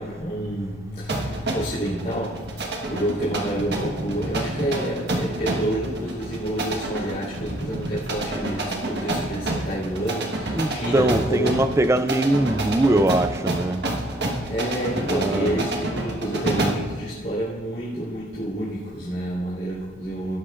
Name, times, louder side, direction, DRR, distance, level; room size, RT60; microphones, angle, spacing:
voice 1, 0.0-11.6 14.5-20.4, right 1 dB, 35° left, 4.2 m, -29 dB
sound 1, 1.1-16.9, right 1 dB, 60° right, 1.4 m, -29 dB
voice 2, 10.5-13.9 15.1-15.6, right 1 dB, 15° right, 0.3 m, -22 dB
18.5 x 11.5 x 2.5 m
head